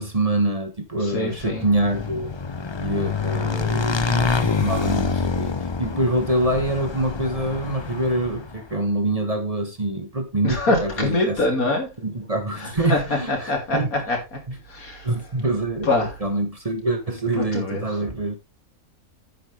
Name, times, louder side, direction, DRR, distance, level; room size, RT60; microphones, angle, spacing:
voice 1, 0.0-2.3 2.8-11.4 12.0-13.9 14.5-14.6 15.0-15.9 16.2-18.3, right 1 dB, 25° right, 1.3 m, -25 dB
voice 2, 1.0-1.7 10.4-11.9 12.6-13.0 13.3-14.4 14.7-15.1 15.8-16.2 17.4-17.8, left 2 dB, 85° left, 3.5 m, -24 dB
Motorcycle / Engine, 1.4-8.7, left 5 dB, 35° left, 0.4 m, -26 dB
10.5 x 8.4 x 3.4 m
omnidirectional pair, 1.5 m